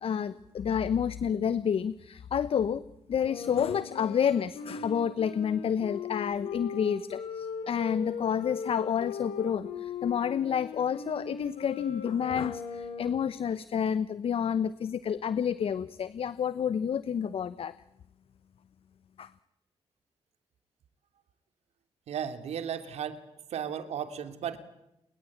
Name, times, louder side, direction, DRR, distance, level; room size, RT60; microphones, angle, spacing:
voice 1, 0.0-2.8 3.1-17.7 19.2-19.3, left 8 dB, 60° left, 16 dB, 1.0 m, -29 dB
Wind instrument woodwind instrument, 3.2-13.3, left 6 dB, 90° left, 6.0 m, -39 dB
voice 2, 22.1-23.2 23.5-24.6, right 8 dB, 75° right, 9 dB, 3.0 m, -35 dB
29.0 x 22.0 x 8.7 m, 0.84 s
cardioid pair, 80°, 11 cm